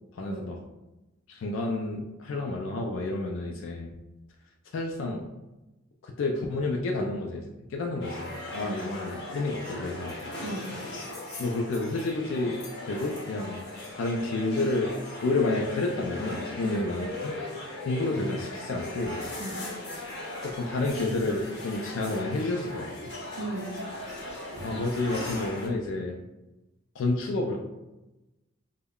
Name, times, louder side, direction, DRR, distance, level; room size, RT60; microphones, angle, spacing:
voice 1, 0.1-0.6 1.3-3.9 4.7-5.2 6.0-10.2 11.4-13.6 13.9-14.9 15.2-17.4 17.8-19.2 20.4-23.1 24.6-26.2 26.9-27.6, left 2 dB, 70° left, 1 dB, 0.3 m, -30 dB
sound 1, 8.0-25.7, left 1 dB, 55° left, 0.7 m, -38 dB
voice 2, 10.4-10.7 16.6-16.9 19.4-19.7 23.4-23.9, right 2 dB, 55° right, 3 dB, 0.4 m, -37 dB
2.2 x 2.1 x 3.5 m, 1.0 s
head